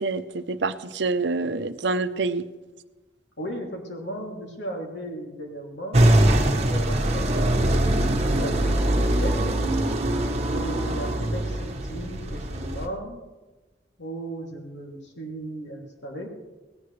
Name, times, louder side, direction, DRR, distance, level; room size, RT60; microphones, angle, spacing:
voice 1, 0.0-2.5, right 3 dB, 75° right, 12 dB, 0.7 m, -27 dB
voice 2, 3.4-6.0 6.6-9.4 10.5-13.2 14.0-16.3, right 1 dB, 80° left, 0 dB, 2.8 m, -35 dB
sound 1, 5.9-12.9, right 1 dB, 35° right, 1.1 m, -22 dB
19.0 x 17.5 x 3.3 m, 1.2 s
head